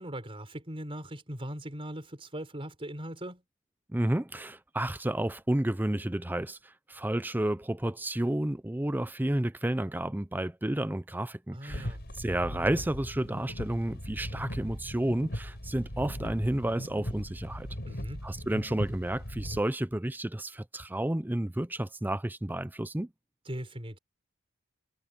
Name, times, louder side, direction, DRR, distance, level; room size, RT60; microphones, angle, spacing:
voice 1, 0.0-3.4 11.5-12.0 17.9-18.2 23.5-24.0, right 1 dB, 25° right, 4.3 m, -39 dB
voice 2, 3.9-17.7 18.2-23.1, right 1 dB, 10° right, 0.5 m, -31 dB
sound 1, 11.7-19.6, equal, 50° left, 6.6 m, -39 dB
head